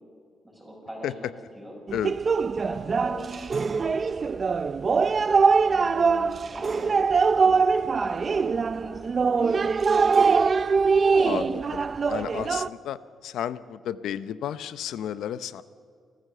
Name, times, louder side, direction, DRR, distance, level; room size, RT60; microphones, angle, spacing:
voice 1, 0.4-1.3 1.5-1.8 2.6-4.0 5.6-9.7, equal, 5° right, -2 dB, 7.6 m, -43 dB
sound 1, 1.9-12.7, right 5 dB, 35° right, 0.5 m, -23 dB
voice 2, 11.2-11.8 12.1-15.6, left 10 dB, 80° left, 15 dB, 0.7 m, -32 dB
29.5 x 14.0 x 6.7 m, 2.2 s
cardioid pair, 120°, 0 cm